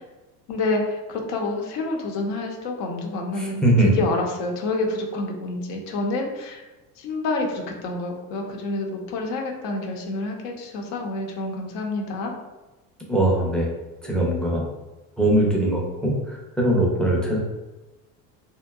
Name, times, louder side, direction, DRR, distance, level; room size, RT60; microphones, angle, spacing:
voice 1, 0.5-6.6 7.0-12.3, left 2 dB, 60° left, 1 dB, 0.7 m, -28 dB
voice 2, 3.4-3.9 13.1-13.7 14.0-14.6 15.2-17.4, right 1 dB, ahead, -2 dB, 0.4 m, -21 dB
2.7 x 2.2 x 2.3 m, 1.1 s
hypercardioid pair, 85°, 49 cm